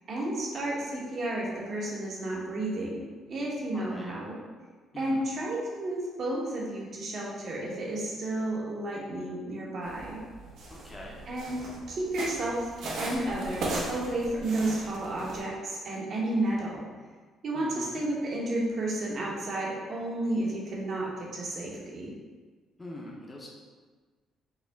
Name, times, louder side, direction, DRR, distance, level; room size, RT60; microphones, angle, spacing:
voice 1, 0.1-3.0 3.3-4.4 5.0-10.2 11.3-11.6 11.9-12.7 13.0-16.9 17.4-22.1, right 1 dB, 50° right, -3 dB, 1.1 m, -32 dB
voice 2, 3.7-4.1 4.9-5.2 10.7-11.2 17.5-18.0 22.8-23.5, left 1 dB, 20° left, -3 dB, 0.8 m, -43 dB
sound 1, 9.8-15.4, right 2 dB, 75° right, 1.0 m, -38 dB
5.5 x 2.1 x 3.5 m, 1.4 s
cardioid pair, 95°, 0 cm